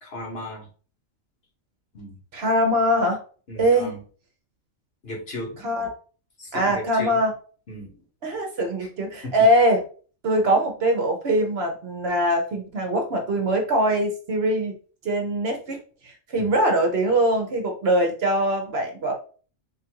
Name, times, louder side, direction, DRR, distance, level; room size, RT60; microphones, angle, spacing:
voice 1, 0.0-0.7 1.9-2.1 3.5-4.0 5.0-5.7 6.4-7.2 7.7-8.0 9.2-9.3 16.4-16.5, left 1 dB, 50° left, -1 dB, 1.4 m, -36 dB
voice 2, 2.3-3.2 3.6-3.9 5.6-5.9 6.5-7.3 8.2-9.8 10.2-14.7 15.0-19.1, right 1 dB, 55° right, 3 dB, 0.9 m, -22 dB
3.7 x 2.5 x 4.5 m, 0.40 s
omnidirectional pair, 1.3 m